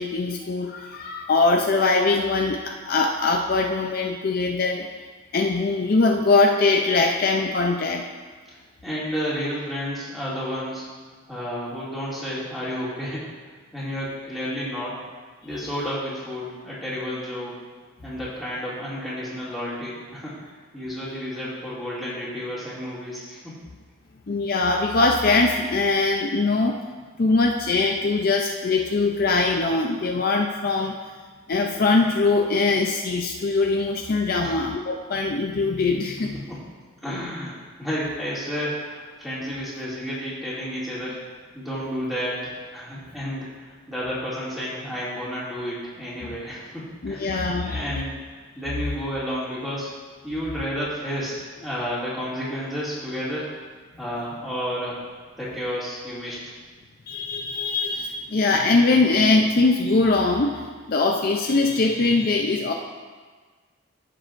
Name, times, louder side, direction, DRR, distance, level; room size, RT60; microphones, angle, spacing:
voice 1, 0.0-4.9 5.3-8.0 15.5-15.6 24.3-26.8 27.2-31.0 31.5-36.5 46.3-46.4 47.0-47.8 57.1-62.7, left 3 dB, 45° left, 2 dB, 0.5 m, -22 dB
voice 2, 8.8-10.8 11.3-13.2 13.7-15.0 15.4-17.5 18.0-20.3 20.7-23.6 34.3-34.6 36.5-36.6 37.0-37.5 37.8-41.2 41.5-49.9 50.2-53.5 54.0-55.0 55.4-56.4, equal, ahead, -9 dB, 2.4 m, -31 dB
15.0 x 6.7 x 2.5 m, 1.5 s
head